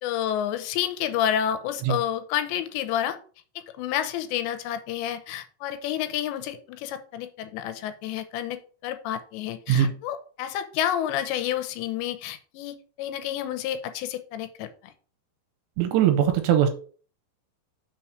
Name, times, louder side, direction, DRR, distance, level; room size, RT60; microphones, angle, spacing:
voice 1, 0.0-3.2 3.6-14.9, left 10 dB, 90° left, 3.0 m, -30 dB
voice 2, 15.8-16.7, right 10 dB, 85° right, 3.0 m, -20 dB
6.3 x 4.3 x 6.4 m
omnidirectional pair, 5.1 m